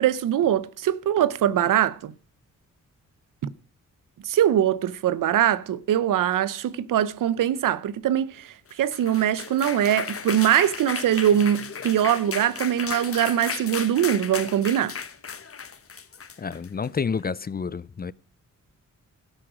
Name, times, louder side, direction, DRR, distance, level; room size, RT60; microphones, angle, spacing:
voice 1, 0.0-2.1 4.2-14.9, right 10 dB, 85° right, 0.8 m, -22 dB
sound 1, 8.7-17.0, left 6 dB, 45° left, 1.3 m, -35 dB
voice 2, 16.4-18.1, left 5 dB, 30° left, 0.6 m, -29 dB
13.0 x 9.7 x 6.3 m
cardioid pair, 70°, 32 cm